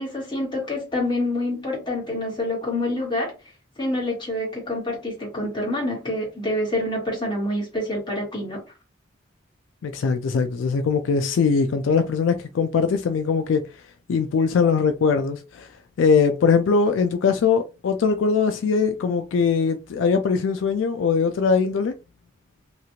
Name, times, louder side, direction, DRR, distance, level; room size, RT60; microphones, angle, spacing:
voice 1, 0.0-3.3 3.8-8.6, left 1 dB, 25° left, 1.3 m, -27 dB
voice 2, 9.8-13.6 14.1-15.7 16.0-21.9, left 5 dB, 75° left, 0.3 m, -21 dB
2.9 x 2.4 x 2.7 m
head